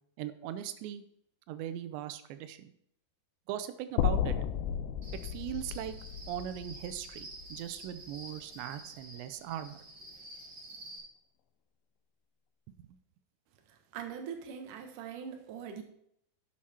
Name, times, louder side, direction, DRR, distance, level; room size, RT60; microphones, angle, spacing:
voice 1, 0.2-1.0 1.5-2.7 3.5-4.4 5.3-6.0 6.3-9.8 12.8-12.9, right 11 dB, 85° right, 11 dB, 2.9 m, -39 dB
sound 1, 4.0-8.2, left 9 dB, 85° left, 2.9 m, -34 dB
Cricket, 5.0-11.0, right 1 dB, 30° right, 4.9 m, -49 dB
voice 2, 13.7-15.8, right 7 dB, 60° right, 4 dB, 2.4 m, -42 dB
12.0 x 7.4 x 4.3 m, 0.72 s
omnidirectional pair, 4.9 m